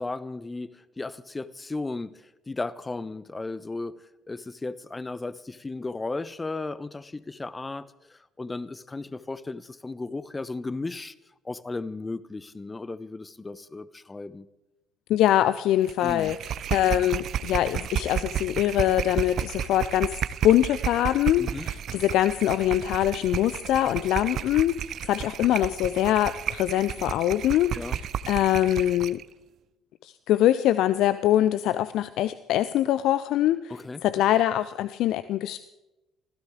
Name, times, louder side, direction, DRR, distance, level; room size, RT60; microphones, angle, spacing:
voice 1, 0.0-3.9 4.3-11.1 11.4-14.5 16.0-16.3 21.4-21.7 27.7-28.0 33.7-34.0, left 3 dB, 20° left, 18 dB, 0.9 m, -35 dB
voice 2, 15.1-16.4 16.7-27.7 28.3-29.2 30.0-33.7 34.0-35.6, left 12 dB, 55° left, 15 dB, 0.5 m, -23 dB
sound 1, 15.8-29.2, right 9 dB, 50° right, 0.5 m, -32 dB
25.5 x 16.0 x 3.6 m, 1.0 s
figure-of-eight pair, 50°, 0 cm